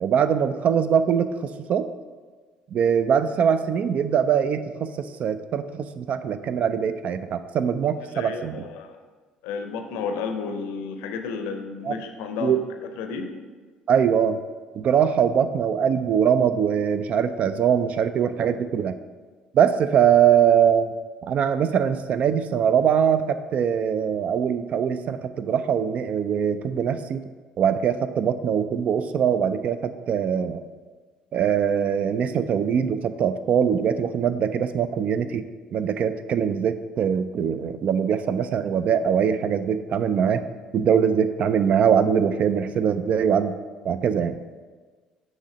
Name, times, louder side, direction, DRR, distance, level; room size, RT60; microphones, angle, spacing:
voice 1, 0.0-1.9 2.7-8.7 11.9-12.0 12.4-12.6 13.9-14.4 14.7-19.0 19.5-20.9 21.2-27.2 27.6-30.6 31.3-35.4 35.7-40.4 40.7-43.6 43.8-44.4, right 8 dB, 50° right, 11 dB, 0.3 m, -22 dB
voice 2, 8.1-9.0 9.4-13.3, left 5 dB, 65° left, 6 dB, 0.6 m, -32 dB
6.4 x 3.1 x 5.0 m, 1.4 s
figure-of-eight pair, 55°, 3 cm